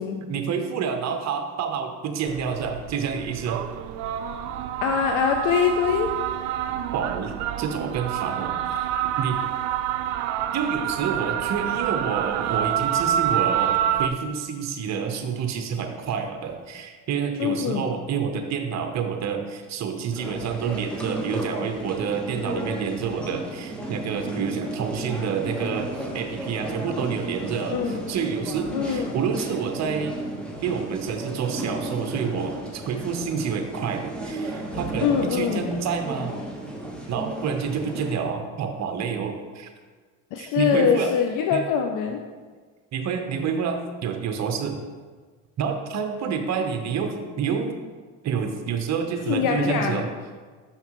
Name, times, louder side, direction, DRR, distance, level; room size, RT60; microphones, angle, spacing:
voice 1, 0.2-3.6 6.9-8.9 9.2-9.4 10.5-30.2 30.6-36.4 37.1-39.7 40.4-41.1 41.5-41.6 42.9-44.8 45.6-47.7 48.2-50.1, right 6 dB, 45° right, 5 dB, 0.9 m, -28 dB
sound 1, 2.3-14.1, right 10 dB, 75° right, 0.5 m, -27 dB
voice 2, 4.8-6.1 17.4-17.9 27.7-28.0 28.7-29.2 35.0-35.6 40.3-42.2 49.3-50.0, left 7 dB, 55° left, 4 dB, 0.6 m, -23 dB
sound 2, 20.1-38.2, right 1 dB, 5° left, 1.2 m, -34 dB
6.4 x 5.7 x 3.0 m, 1.5 s
supercardioid pair, 80°, 38 cm